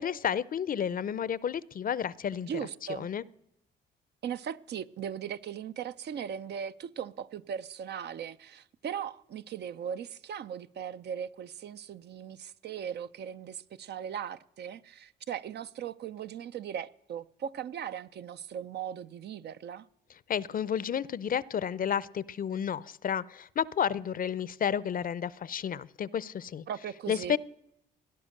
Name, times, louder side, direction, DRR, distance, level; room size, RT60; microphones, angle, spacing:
voice 1, 0.0-2.5 2.9-3.2 20.3-26.6 27.1-27.4, left 8 dB, 45° left, 0.6 m, -31 dB
voice 2, 2.5-3.1 4.2-19.9 26.7-27.4, right 8 dB, 60° right, 0.6 m, -38 dB
17.0 x 11.0 x 6.5 m
supercardioid pair, 70°, 20 cm